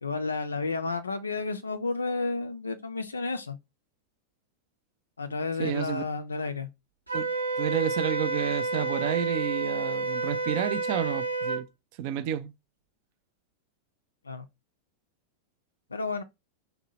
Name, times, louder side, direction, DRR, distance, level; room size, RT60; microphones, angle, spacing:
voice 1, 0.0-3.6 5.2-6.7 14.2-14.5 15.9-16.2, left 3 dB, 75° left, 0.3 m, -31 dB
voice 2, 5.6-6.0 7.1-7.3 7.6-11.7 12.0-12.5, right 10 dB, 45° right, 0.3 m, -30 dB
Wind instrument woodwind instrument, 7.1-11.6, right 3 dB, 85° right, 0.8 m, -30 dB
2.7 x 2.0 x 2.8 m
figure-of-eight pair, 90°, 0 cm